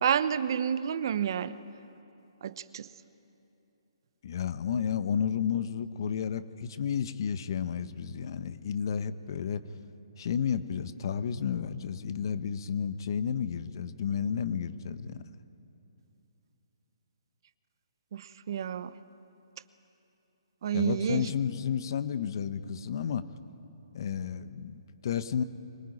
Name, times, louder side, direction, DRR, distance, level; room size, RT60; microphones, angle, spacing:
voice 1, 0.0-1.6 2.4-2.9 18.1-18.9 20.6-21.2, right 8 dB, 55° right, 14 dB, 0.9 m, -29 dB
voice 2, 4.2-9.6 10.2-15.2 20.7-23.2 23.9-25.4, left 7 dB, 55° left, 13 dB, 1.1 m, -32 dB
24.5 x 18.5 x 9.9 m, 2.9 s
hypercardioid pair, 145°, 3 cm